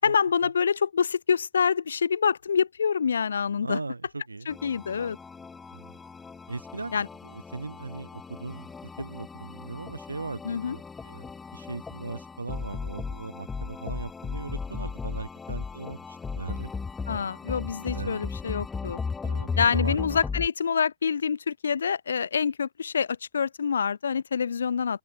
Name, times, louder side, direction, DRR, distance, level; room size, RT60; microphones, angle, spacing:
voice 1, 0.0-3.8 4.5-5.2 6.9-7.1 10.4-10.8 17.1-19.0 19.6-25.0, left 6 dB, 70° left, 0.5 m, -26 dB
voice 2, 3.6-4.5 5.7-6.0 6.5-6.9 7.2-16.7 17.9-18.3 19.2-20.0, right 3 dB, 80° right, 0.9 m, -38 dB
sound 1, 4.5-20.5, left 5 dB, 15° left, 0.6 m, -36 dB
figure-of-eight pair, 90°, 0 cm